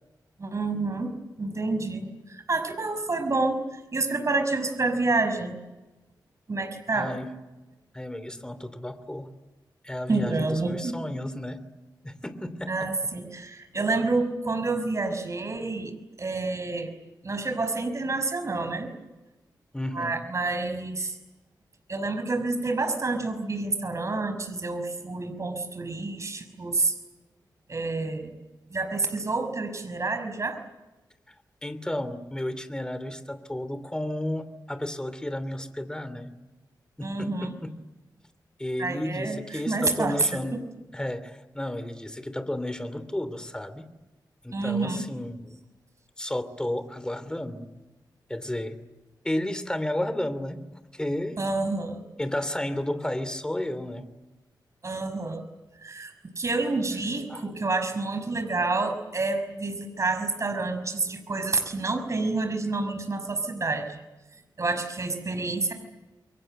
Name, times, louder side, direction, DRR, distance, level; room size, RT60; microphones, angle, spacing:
voice 1, 0.4-1.1 1.4-5.6 6.5-7.1 10.1-11.0 12.7-16.9 17.2-18.9 19.9-21.2 21.9-26.9 27.7-28.3 28.7-30.6 37.0-37.5 38.8-40.6 44.5-45.0 51.4-52.0 54.8-55.4 55.8-64.0 64.6-65.7, right 3 dB, 40° right, 7 dB, 5.8 m, -28 dB
voice 2, 6.9-7.3 7.9-9.3 9.8-11.6 12.0-12.9 19.7-20.2 31.6-36.3 37.0-37.7 38.6-40.6 40.9-43.9 44.4-45.6 46.2-47.7 48.3-48.8 49.2-50.6 50.9-51.4 52.2-54.1 57.3-57.5, left 1 dB, 10° left, 12 dB, 3.0 m, -32 dB
29.5 x 23.5 x 7.9 m, 1.1 s
wide cardioid pair, 90°, 8 cm